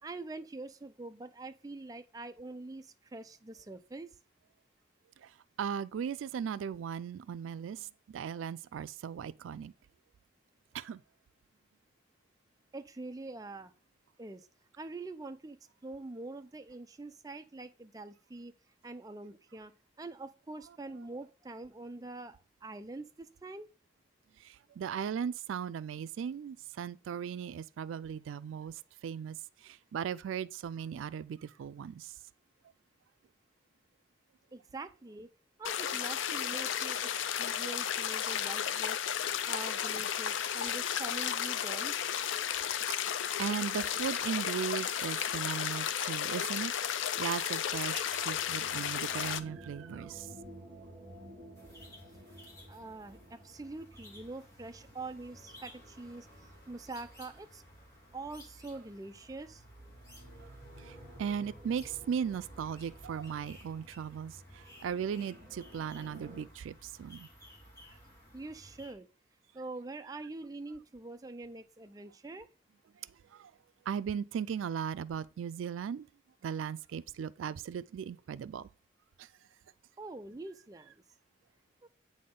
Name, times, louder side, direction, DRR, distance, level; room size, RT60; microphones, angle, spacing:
voice 1, 0.0-4.2 12.7-13.7 14.2-14.5 14.8-15.6 15.8-18.5 18.8-19.7 20.0-23.7 34.5-35.3 35.6-42.1 52.7-57.6 58.1-59.6 68.3-69.1 69.5-72.5 80.0-81.0 81.8-81.9, right 2 dB, 20° right, 0.4 m, -45 dB
voice 2, 5.6-9.7 10.7-11.0 24.4-29.4 29.6-32.1 43.4-46.7 47.2-50.4 60.8-67.3 73.3-73.5 73.9-76.1 76.4-78.7 79.2-79.3, right 7 dB, 90° right, 0.3 m, -37 dB
sound 1, 35.6-49.4, left 9 dB, 80° left, 0.5 m, -33 dB
sound 2, 47.7-58.5 59.6-66.4, right 1 dB, 55° right, 2.0 m, -55 dB
sound 3, 51.5-68.9, equal, 15° left, 2.0 m, -55 dB
8.4 x 4.2 x 3.7 m
head